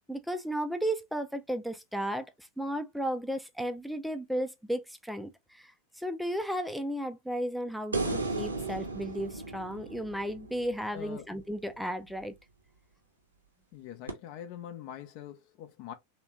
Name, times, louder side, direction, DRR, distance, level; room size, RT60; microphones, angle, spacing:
voice 1, 0.1-12.3, equal, ahead, 0.6 m, -34 dB
sound 1, 7.9-11.2 14.1-14.2, right 3 dB, 80° right, 1.1 m, -35 dB
voice 2, 10.9-11.2 13.7-15.9, left 10 dB, 45° left, 0.7 m, -43 dB
3.5 x 3.0 x 3.0 m
figure-of-eight pair, 90°, 0 cm